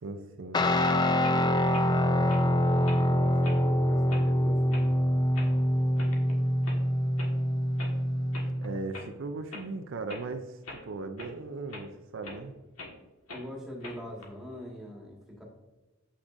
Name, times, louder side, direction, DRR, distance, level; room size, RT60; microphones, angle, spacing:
voice 1, 0.0-0.6 8.6-12.6, right 3 dB, 60° right, 6 dB, 0.5 m, -38 dB
Guitar, 0.5-8.7, equal, 20° left, 0.3 m, -25 dB
sound 1, 1.2-1.4 1.7-1.9 2.3-2.4 2.9-3.1 3.4-3.6 4.1-4.3 4.7-4.9 5.3-5.5 6.0-6.3 6.6-6.8 7.2-7.3 7.8-7.9 8.3-8.5 8.9-9.1 9.5-9.6 10.1-10.3 10.6-10.8 11.2-11.3 11.7-11.9 12.2-12.4 12.8-12.9 13.3-13.5 13.8-14.3, left 2 dB, 80° left, 1.6 m, -42 dB
voice 2, 2.7-5.0 13.3-15.4, equal, ahead, -3 dB, 1.7 m, -44 dB
8.0 x 6.0 x 2.5 m, 1.1 s
head